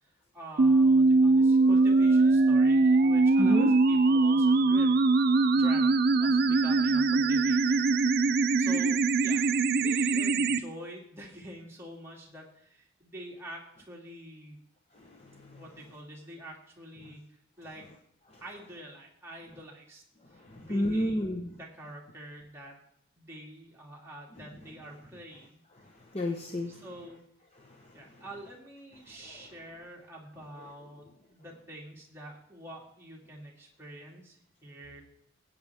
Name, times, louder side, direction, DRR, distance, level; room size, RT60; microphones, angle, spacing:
voice 1, 0.0-5.0 5.5-14.6 15.6-17.9 18.4-20.0 20.3-22.8 23.1-25.6 26.7-27.2 27.9-35.0, right 1 dB, 15° right, -3 dB, 2.3 m, -46 dB
sound 1, 0.6-10.6, right 3 dB, 50° right, 0.5 m, -22 dB
voice 2, 3.4-3.7 14.9-15.6 18.3-18.4 20.3-21.5 25.8-26.8 27.6-28.2 29.2-29.5, left 1 dB, 30° left, 1 dB, 1.0 m, -33 dB
20.5 x 8.8 x 3.5 m, 0.71 s
head